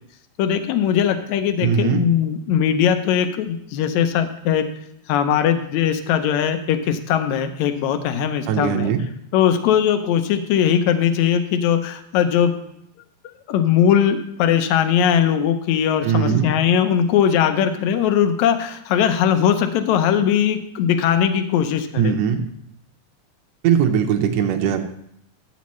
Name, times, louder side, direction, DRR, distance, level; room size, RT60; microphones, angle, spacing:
voice 1, 0.4-4.7 5.1-8.9 9.3-12.6 13.5-22.1, left 9 dB, 80° left, 9 dB, 1.7 m, -20 dB
voice 2, 1.6-2.0 8.5-9.0 16.0-16.5 22.0-22.5 23.6-24.8, right 8 dB, 75° right, 5 dB, 1.6 m, -19 dB
13.0 x 8.3 x 3.1 m, 0.74 s
omnidirectional pair, 4.1 m